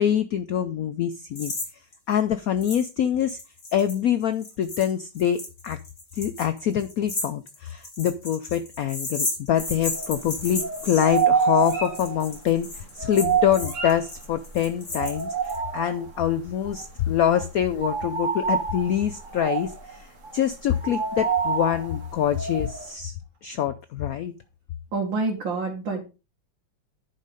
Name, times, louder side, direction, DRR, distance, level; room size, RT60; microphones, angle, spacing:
voice 1, 0.0-1.5 2.1-3.4 3.7-5.8 6.1-20.1 20.3-23.1 23.4-24.3, left 9 dB, 65° left, 11 dB, 0.9 m, -25 dB
sound 1, 1.4-1.7 1.9-2.0 2.6-2.9 3.2-15.6, left 2 dB, 40° left, 3.6 m, -34 dB
sound 2, 9.6-10.3 10.6-14.5 14.9-16.3 16.6-16.9 17.1-22.9, right 6 dB, 40° right, 2.5 m, -27 dB
voice 2, 24.9-26.0, right 3 dB, 90° right, -2 dB, 2.7 m, -27 dB
10.5 x 5.5 x 5.1 m, 0.30 s
omnidirectional pair, 2.0 m